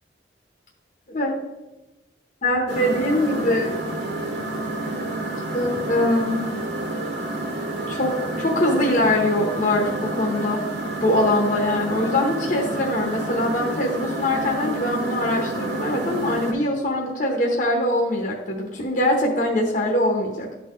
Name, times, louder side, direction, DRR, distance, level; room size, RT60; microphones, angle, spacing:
voice 1, 1.1-1.4 2.4-3.9 5.5-6.4 7.9-10.6 11.0-20.5, left 1 dB, 50° left, -1 dB, 1.0 m, -23 dB
sound 1, 2.7-16.5, right 2 dB, 75° right, 1.5 m, -29 dB
12.0 x 4.2 x 3.1 m, 1.0 s
head